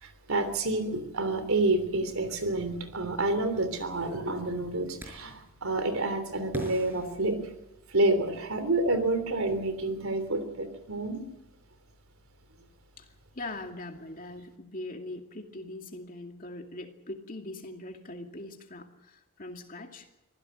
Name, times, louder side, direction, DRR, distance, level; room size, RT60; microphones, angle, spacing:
voice 1, 0.0-7.4 7.9-11.2, right 2 dB, 75° right, 9 dB, 3.3 m, -28 dB
sound 1, 5.0-5.5 6.5-8.0, equal, 10° right, 5.8 m, -41 dB
voice 2, 13.3-20.1, left 2 dB, 40° left, 4 dB, 2.4 m, -41 dB
24.5 x 16.0 x 7.8 m, 0.90 s
head